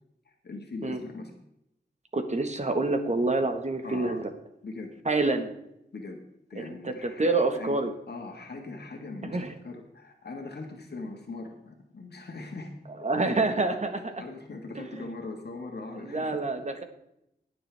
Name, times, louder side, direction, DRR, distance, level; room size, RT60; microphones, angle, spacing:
voice 1, 0.4-1.3 3.8-4.2 4.6-4.9 5.9-6.2 6.5-7.8 8.1-12.8 13.2-13.4 14.2-16.4, left 3 dB, 70° left, 2 dB, 1.7 m, -40 dB
voice 2, 2.1-4.2 5.0-5.5 6.6-7.9 9.3-9.5 13.0-14.2 14.7-15.1 16.0-16.8, right 3 dB, 40° right, 7 dB, 1.5 m, -27 dB
20.5 x 6.9 x 3.5 m, 0.81 s
wide cardioid pair, 80°, 18 cm